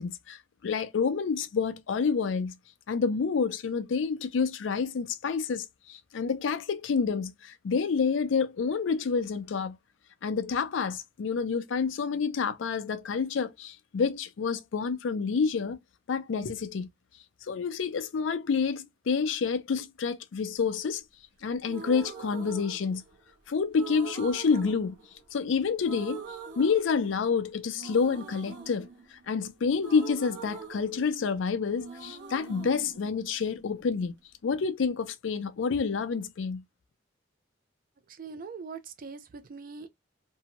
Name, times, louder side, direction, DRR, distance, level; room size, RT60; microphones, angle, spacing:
voice 1, 0.0-2.5 2.9-9.8 10.2-15.8 16.1-16.9 17.5-21.0 21.4-23.0 23.5-25.0 25.3-26.2 26.6-28.9 29.3-34.1 34.4-36.6, left 5 dB, 80° left, 0.4 m, -28 dB
sound 1, 21.7-23.3 23.8-25.5 25.8-27.4 27.8-31.5 31.8-33.8, right 5 dB, 70° right, 0.9 m, -43 dB
voice 2, 38.1-39.9, right 5 dB, 50° right, 0.4 m, -42 dB
2.6 x 2.1 x 2.9 m
head